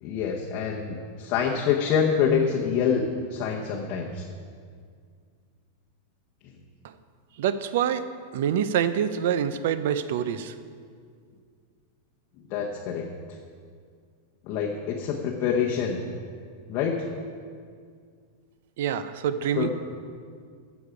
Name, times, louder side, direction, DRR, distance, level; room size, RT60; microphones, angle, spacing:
voice 1, 0.0-3.0 3.3-4.3 12.5-13.1 14.5-16.0 16.7-17.1 19.6-19.7, left 7 dB, 35° left, -1 dB, 0.8 m, -26 dB
voice 2, 7.4-8.1 8.3-10.5 18.8-19.7, right 9 dB, 55° right, 13 dB, 0.6 m, -26 dB
15.0 x 7.0 x 5.1 m, 2.1 s
supercardioid pair, 175°, 0 cm